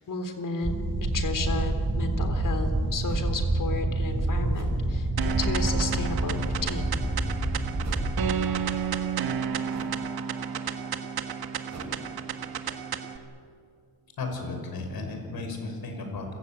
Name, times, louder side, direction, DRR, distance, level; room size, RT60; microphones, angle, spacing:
voice 1, 0.0-7.0, left 3 dB, 60° left, 7 dB, 3.7 m, -33 dB
sound 1, 0.6-8.3, right 1 dB, 20° right, 3.5 m, -27 dB
sound 2, 3.1-3.3 4.5-4.9 5.7-6.1 7.8-8.2 9.7-10.1 11.7-12.0, right 3 dB, 50° right, 5.5 m, -43 dB
sound 3, 5.2-13.2, right 7 dB, 80° right, 1.6 m, -31 dB
voice 2, 14.2-16.3, left 3 dB, 75° left, 4 dB, 5.8 m, -34 dB
29.0 x 16.0 x 8.9 m, 2.4 s
cardioid pair, 95°, 36 cm